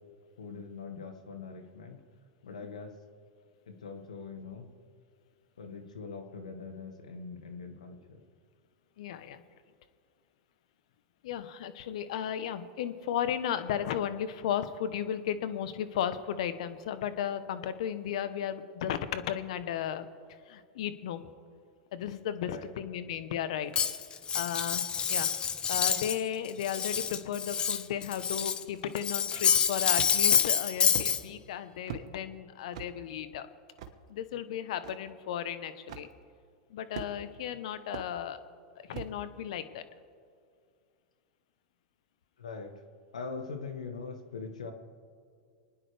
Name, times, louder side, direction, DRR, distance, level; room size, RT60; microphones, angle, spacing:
voice 1, 0.4-2.0 2.4-2.9 3.7-4.7 5.6-8.2 22.4-23.0 42.4-42.7 43.1-44.7, left 4 dB, 90° left, 6 dB, 1.5 m, -42 dB
voice 2, 9.0-9.4 11.2-20.1 20.5-21.3 21.9-23.7 24.3-25.3 25.7-33.5 34.1-36.1 36.7-38.4 38.9-39.8, left 9 dB, 70° left, 11 dB, 1.0 m, -35 dB
Cutlery silverware, 23.7-26.2 26.5-28.6 29.0-31.2, left 7 dB, 25° left, 0.9 m, -27 dB
sound 1, 29.9-30.4 30.9-31.1 31.9-32.1 32.7-32.9 33.8-34.0 34.8-34.9 35.9-36.1 36.9-37.4 37.9-38.1 38.9-39.2, right 7 dB, 65° right, 1.3 m, -40 dB
27.0 x 9.9 x 3.4 m, 2.2 s
hypercardioid pair, 105°, 4 cm